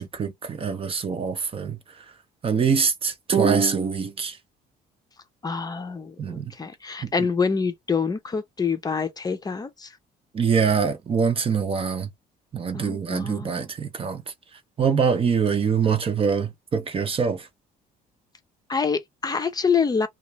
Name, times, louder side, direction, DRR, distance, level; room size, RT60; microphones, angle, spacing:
voice 1, 0.0-1.8 2.4-4.4 6.2-6.5 7.2-7.3 10.3-12.1 12.5-14.2 14.8-17.5, right 6 dB, 35° right, 0.7 m, -24 dB
voice 2, 5.4-9.9 12.7-13.6 18.7-20.1, left 5 dB, 25° left, 0.6 m, -26 dB
2.5 x 2.4 x 3.0 m
cardioid pair, 110°, 17 cm